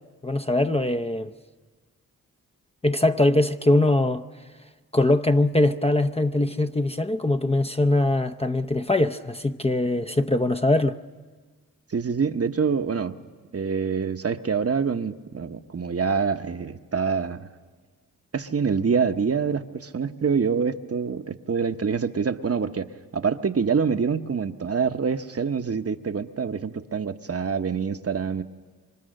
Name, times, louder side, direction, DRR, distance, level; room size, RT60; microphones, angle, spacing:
voice 1, 0.2-1.3 2.8-4.3 4.9-11.0, left 2 dB, 15° left, 0.7 m, -22 dB
voice 2, 11.9-13.1 13.5-17.5 18.3-22.9 23.1-28.4, right 6 dB, 40° right, 1.0 m, -26 dB
27.0 x 24.5 x 6.6 m
cardioid pair, 50°, 36 cm